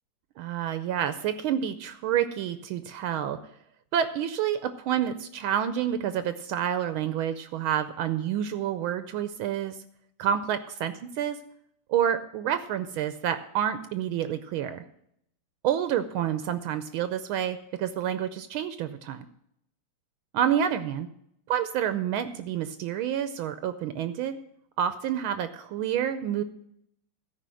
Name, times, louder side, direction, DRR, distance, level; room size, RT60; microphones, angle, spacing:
voice 1, 0.4-3.4 3.9-9.8 10.2-11.4 11.9-14.8 15.6-19.2 20.3-21.1 21.5-24.4 24.8-26.4, right 9 dB, 75° right, 11 dB, 1.4 m, -28 dB
13.5 x 5.1 x 7.6 m, 0.73 s
omnidirectional pair, 2.4 m